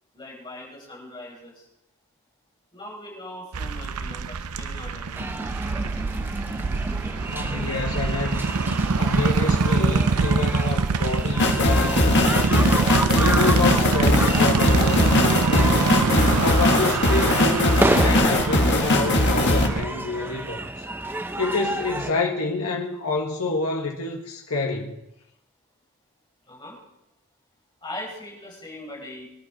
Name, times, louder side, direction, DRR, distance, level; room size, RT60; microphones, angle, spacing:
voice 1, 0.1-1.6 2.7-5.4 21.7-21.8 26.5-26.8 27.8-29.3, left 1 dB, 20° left, 7.1 m, -40 dB
sound 1, 3.5-19.8, right 4 dB, 90° right, 0.7 m, -24 dB
sound 2, 5.1-22.1, right 1 dB, 10° right, 0.7 m, -30 dB
voice 2, 7.3-8.5 9.0-12.7 13.1-15.9 16.4-20.8 21.4-25.0, left 3 dB, 80° left, 1.7 m, -28 dB
sound 3, 11.4-19.7, left 2 dB, 50° left, 1.8 m, -20 dB
24.5 x 11.0 x 4.3 m
head